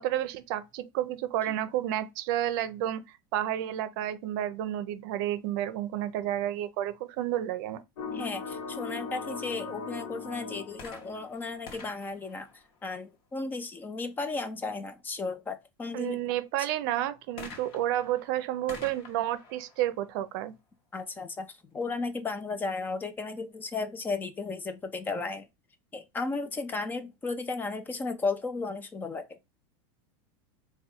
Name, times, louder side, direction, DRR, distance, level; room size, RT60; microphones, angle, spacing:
voice 1, 0.0-3.0 3.3-7.8 15.9-20.5, right 12 dB, 60° right, 0.6 m, -31 dB
sound 1, 8.0-11.8, left 5 dB, 65° left, 0.8 m, -39 dB
voice 2, 8.1-16.2 20.9-25.5 25.9-29.4, left 3 dB, 15° left, 0.5 m, -34 dB
sound 2, 10.8-13.3 17.4-21.0 21.8-21.9, left 4 dB, 40° left, 1.0 m, -49 dB
3.5 x 2.3 x 4.3 m
supercardioid pair, 150°, 12 cm